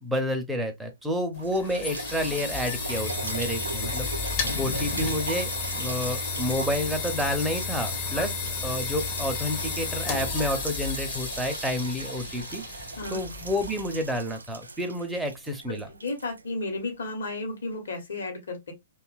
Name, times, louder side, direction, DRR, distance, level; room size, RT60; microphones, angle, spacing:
voice 1, 0.0-4.1 4.6-8.3 8.6-12.6 13.1-15.9, equal, 5° right, 0.6 m, -29 dB
sound 1, 1.3-14.1, left 5 dB, 35° left, 0.7 m, -33 dB
sound 2, 1.4-17.1 17.7-17.8, right 3 dB, 80° right, 0.3 m, -39 dB
voice 2, 15.9-18.7, left 2 dB, 65° left, 1.0 m, -33 dB
2.8 x 2.3 x 2.3 m
figure-of-eight pair, 115°, 0 cm